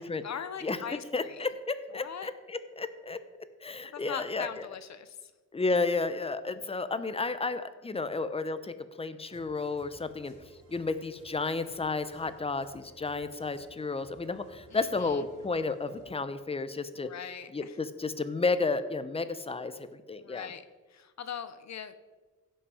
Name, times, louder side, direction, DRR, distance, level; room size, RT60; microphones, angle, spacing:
voice 1, 0.2-1.4 1.9-2.3 3.9-5.3 14.7-15.2 17.0-17.7 20.2-20.6 20.9-21.9, left 8 dB, 60° left, 12 dB, 0.8 m, -41 dB
voice 2, 1.1-3.2 3.6-4.7 5.5-10.3 10.7-17.1 17.5-20.5, left 3 dB, 20° left, 12 dB, 0.7 m, -32 dB
sound 1, 9.3-16.2, right 2 dB, 55° right, 4.1 m, -57 dB
16.5 x 5.6 x 4.9 m, 1.3 s
cardioid pair, 105°, 32 cm